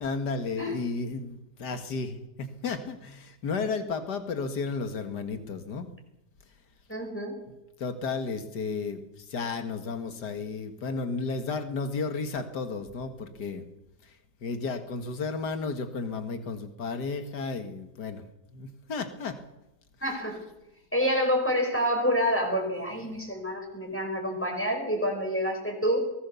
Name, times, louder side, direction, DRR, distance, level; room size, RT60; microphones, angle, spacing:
voice 1, 0.0-5.9 7.8-13.6 14.0-18.2 18.5-19.4 23.1-23.2, left 4 dB, 80° left, 7 dB, 2.3 m, -33 dB
voice 2, 6.9-7.3 20.0-20.4 20.9-26.0, equal, 5° left, 1 dB, 5.3 m, -27 dB
24.0 x 18.5 x 7.0 m, 0.94 s
omnidirectional pair, 1.8 m